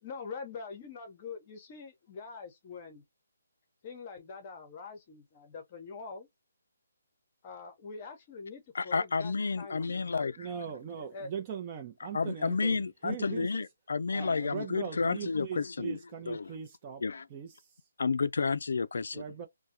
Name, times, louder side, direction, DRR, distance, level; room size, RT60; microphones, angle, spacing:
voice 1, 0.0-3.0 3.8-6.3 7.4-10.3 11.0-11.3, left 5 dB, 30° left, 0.8 m, -44 dB
voice 2, 8.7-10.5 12.1-16.0 16.3-16.5 17.0-17.3 18.0-19.2, left 4 dB, 70° left, 0.3 m, -31 dB
voice 3, 10.4-13.6 14.1-17.0 17.3-17.5 19.1-19.5, right 7 dB, 25° right, 0.6 m, -40 dB
2.3 x 2.2 x 2.7 m
hypercardioid pair, 160°, 0 cm